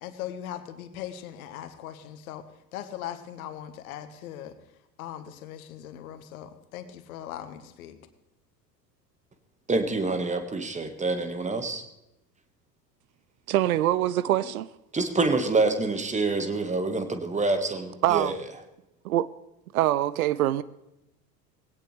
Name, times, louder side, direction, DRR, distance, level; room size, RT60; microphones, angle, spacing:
voice 1, 0.0-2.4 2.7-4.5 5.0-8.0, left 11 dB, 55° left, 1.6 m, -39 dB
voice 2, 9.7-11.8 14.9-18.3, right 3 dB, 15° right, 1.7 m, -26 dB
voice 3, 13.5-14.7 18.0-18.3 19.0-19.3 19.7-20.6, right 13 dB, 60° right, 0.7 m, -24 dB
19.5 x 17.0 x 3.4 m
figure-of-eight pair, 75°, 50 cm